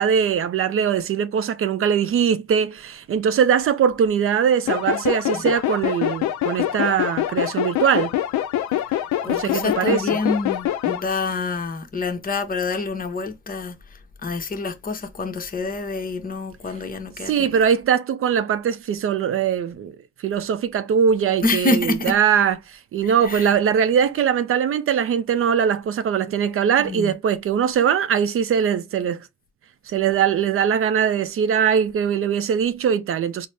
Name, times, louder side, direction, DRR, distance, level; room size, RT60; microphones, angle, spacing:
voice 1, 0.0-8.1 9.3-10.2 17.2-20.0 20.2-29.3 29.9-33.5, right 8 dB, 45° right, 0.4 m, -21 dB
sound 1, 4.7-11.0, left 12 dB, 70° left, 0.5 m, -24 dB
voice 2, 9.2-13.8 14.2-17.5 21.4-22.1 23.0-23.5 26.8-27.1, left 3 dB, 30° left, 0.8 m, -27 dB
3.9 x 2.0 x 3.2 m
cardioid pair, 90°, 30 cm